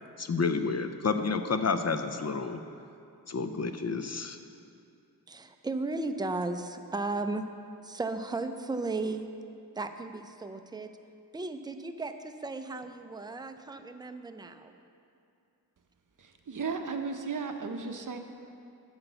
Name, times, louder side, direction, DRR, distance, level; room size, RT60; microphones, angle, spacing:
voice 1, 0.2-2.6 3.3-4.4, left 4 dB, 45° left, 9 dB, 0.5 m, -30 dB
voice 2, 5.3-7.5 7.8-9.3 9.8-10.9 11.3-14.7, right 3 dB, 10° right, 7 dB, 0.4 m, -35 dB
voice 3, 16.2-18.2, right 4 dB, 50° right, 6 dB, 0.7 m, -35 dB
8.0 x 5.9 x 6.6 m, 2.5 s
wide cardioid pair, 70°, 39 cm